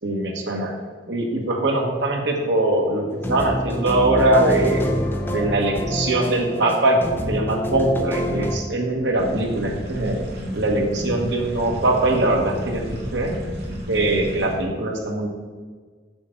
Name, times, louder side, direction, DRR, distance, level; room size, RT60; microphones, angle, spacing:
voice 1, 0.0-0.7 1.1-4.8 5.3-7.0 7.3-10.2 10.5-12.8 13.1-13.3 13.9-15.3, right 2 dB, 90° right, 1 dB, 1.4 m, -21 dB
sound 1, 3.1-8.6, equal, 10° left, 0.8 m, -26 dB
sound 2, 9.1-14.5, equal, 60° right, 2.1 m, -32 dB
7.0 x 6.2 x 4.4 m, 1.5 s
head